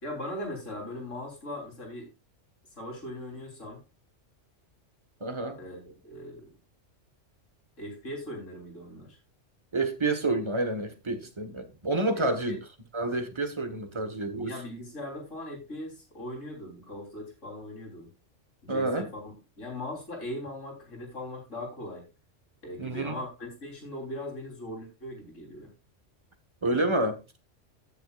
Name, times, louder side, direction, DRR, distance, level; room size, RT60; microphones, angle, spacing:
voice 1, 0.0-2.1 2.8-3.8 5.6-6.5 7.8-9.2 12.2-12.6 14.4-18.1 18.6-22.0 22.6-25.7, left 1 dB, 85° left, 4.0 m, -39 dB
voice 2, 5.2-5.6 9.7-12.6 12.9-14.5 18.7-19.1 22.8-23.2 26.6-27.2, right 2 dB, 25° right, 1.3 m, -29 dB
15.0 x 7.1 x 2.4 m
omnidirectional pair, 1.3 m